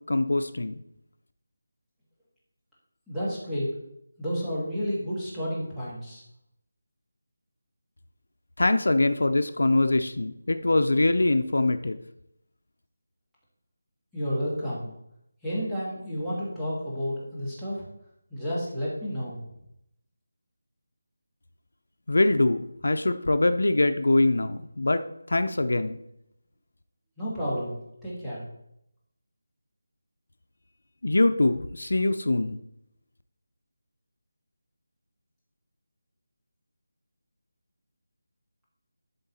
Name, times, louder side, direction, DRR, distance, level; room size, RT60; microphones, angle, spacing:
voice 1, 0.1-0.7 8.6-12.0 22.1-26.0 31.0-32.6, left 2 dB, 80° left, 9 dB, 0.6 m, -23 dB
voice 2, 3.1-3.8 4.2-6.2 14.1-14.9 15.4-17.8 18.3-19.4 27.2-28.5, equal, ahead, -12 dB, 1.7 m, -31 dB
11.5 x 3.9 x 4.2 m, 0.80 s
figure-of-eight pair, 175°, 0 cm